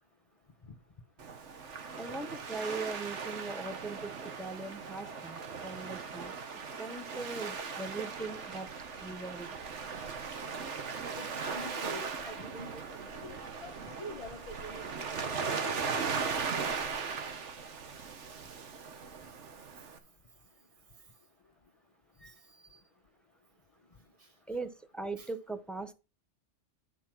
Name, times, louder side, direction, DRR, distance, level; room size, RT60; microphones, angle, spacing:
Waves surf, 1.2-20.0, right 5 dB, 75° right, 1.5 m, -38 dB
voice 1, 2.0-8.7 9.0-9.5 24.5-25.9, right 3 dB, ahead, 0.6 m, -40 dB
voice 2, 11.2-16.2 22.2-22.3 22.7-22.8 25.2-25.3, left 1 dB, 35° left, 0.9 m, -46 dB
10.5 x 4.3 x 6.0 m
omnidirectional pair, 1.2 m